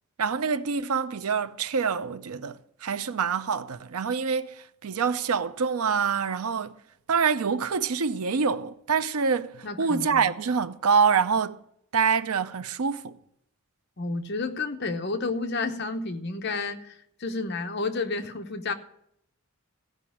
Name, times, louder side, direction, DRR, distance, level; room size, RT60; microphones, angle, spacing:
voice 1, 0.2-6.8 7.1-11.6 11.9-13.2, right 6 dB, 90° right, 0.6 m, -26 dB
voice 2, 9.6-10.2 14.0-18.7, left 3 dB, 50° left, 0.9 m, -31 dB
15.0 x 5.0 x 8.5 m
head